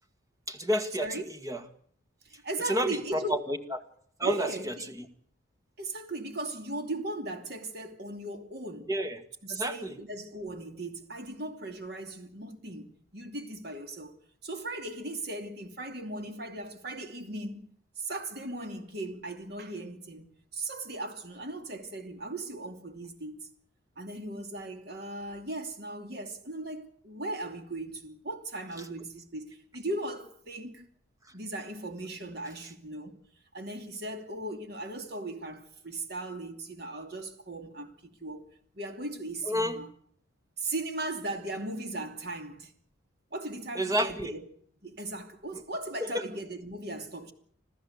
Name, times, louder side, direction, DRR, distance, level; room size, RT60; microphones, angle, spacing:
voice 1, 0.5-1.6 2.7-3.8 4.2-5.1 8.9-9.2 9.5-10.0 28.8-28.9 39.5-39.8 43.7-44.3 46.0-46.3, equal, 15° right, 1.9 m, -30 dB
voice 2, 2.2-3.4 4.2-4.9 5.8-8.9 9.4-14.2 14.4-17.7 18.0-23.5 24.0-30.9 31.3-33.2 33.5-37.9 38.2-38.5 38.8-39.9 40.6-42.7 43.3-44.4 44.8-47.3, right 2 dB, 50° right, 2.7 m, -38 dB
26.5 x 15.0 x 8.2 m
head